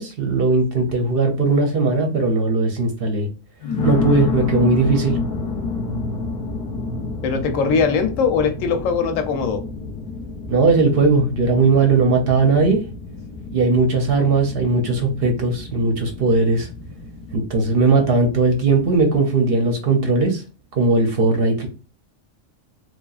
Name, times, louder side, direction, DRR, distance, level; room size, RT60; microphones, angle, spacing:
voice 1, 0.0-3.3 3.8-5.2 10.5-12.8 13.5-16.7 17.3-20.4 20.7-21.7, right 3 dB, 55° right, 0.7 m, -18 dB
sound 1, 0.9-1.1 1.8-1.9 3.6-19.2, left 3 dB, 55° left, 0.6 m, -30 dB
voice 2, 7.2-9.6, left 5 dB, 90° left, 1.0 m, -20 dB
3.0 x 2.3 x 2.3 m
omnidirectional pair, 1.3 m